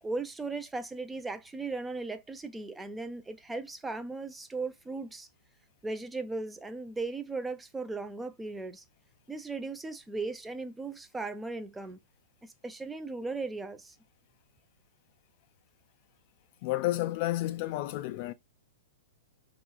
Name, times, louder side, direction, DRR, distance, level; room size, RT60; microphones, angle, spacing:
voice 1, 0.0-5.3 5.8-8.8 9.3-12.0 12.4-14.0, right 3 dB, 10° right, 0.5 m, -37 dB
voice 2, 16.6-18.3, left 16 dB, 45° left, 0.5 m, -31 dB
4.6 x 3.0 x 2.2 m
hypercardioid pair, 110°, 0 cm